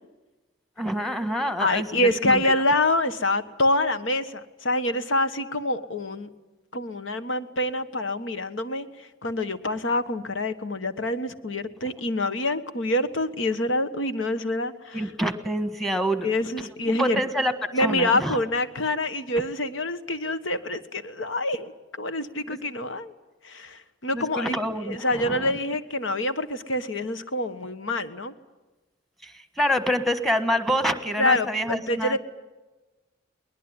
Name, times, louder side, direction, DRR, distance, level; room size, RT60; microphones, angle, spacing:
voice 1, 0.8-2.5 14.9-16.3 16.6-18.4 22.5-22.6 24.1-25.5 29.2-32.2, equal, ahead, 10 dB, 1.5 m, -27 dB
voice 2, 1.6-6.3 6.7-8.9 9.2-15.0 16.2-17.2 17.7-21.7 22.0-23.1 23.4-24.6 24.9-28.3 31.2-32.2, left 1 dB, 80° left, 11 dB, 1.4 m, -26 dB
21.5 x 20.5 x 9.8 m, 1.2 s
head